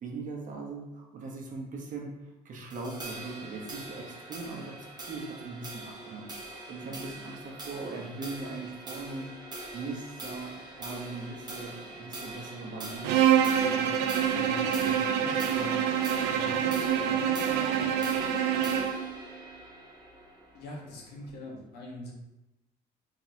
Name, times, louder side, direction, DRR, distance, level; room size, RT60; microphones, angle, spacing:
voice 1, 0.0-2.1 2.4-9.3 9.7-15.8 16.3-17.8, right 3 dB, 50° right, 0 dB, 1.0 m, -41 dB
sound 1, 2.7-21.3, right 2 dB, 25° right, 0.9 m, -43 dB
Bowed string instrument, 13.0-19.1, right 9 dB, 90° right, 0.4 m, -26 dB
voice 2, 20.5-22.1, left 1 dB, 80° left, -2 dB, 1.3 m, -42 dB
3.8 x 3.6 x 2.9 m, 0.96 s
cardioid pair, 110°, 17 cm